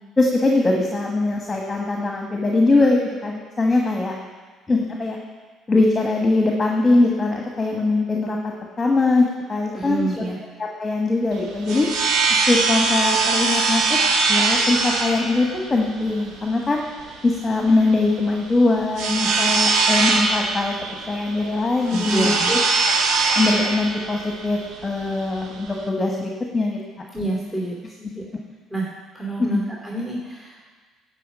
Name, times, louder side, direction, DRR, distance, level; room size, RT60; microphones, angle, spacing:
voice 1, 0.2-4.1 4.7-5.2 5.7-10.2 10.6-11.9 12.3-14.0 14.3-16.8 17.2-20.8 21.1-22.6 23.4-26.8 29.5-29.6, left 2 dB, 25° left, 0 dB, 1.4 m, -21 dB
voice 2, 9.7-10.4 21.8-22.5 27.1-28.2 28.7-30.7, right 2 dB, 10° right, -4 dB, 2.6 m, -28 dB
sound 1, 11.3-25.9, right 4 dB, 60° right, 1.2 m, -22 dB
10.5 x 4.9 x 6.5 m, 1.4 s
hypercardioid pair, 55°, 0 cm